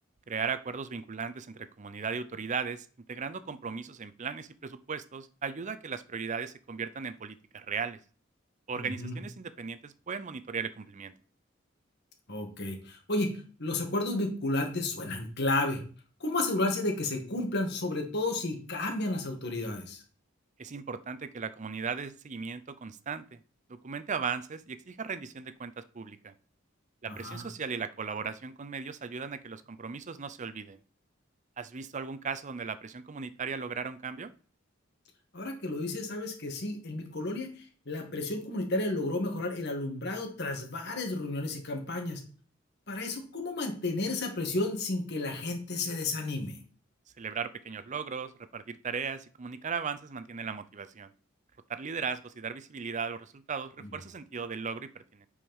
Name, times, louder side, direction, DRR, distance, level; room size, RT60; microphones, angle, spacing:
voice 1, 0.3-8.0 8.7-11.1 20.6-23.4 23.7-26.3 27.0-30.8 31.6-34.3 47.2-51.1 51.7-55.3, right 5 dB, 35° right, 12 dB, 0.5 m, -37 dB
voice 2, 8.7-9.2 12.3-13.3 13.6-15.8 16.2-20.0 27.0-27.5 35.3-42.2 42.9-46.6 53.8-53.9, left 2 dB, 55° left, 3 dB, 2.0 m, -32 dB
8.8 x 4.8 x 5.4 m, 0.41 s
head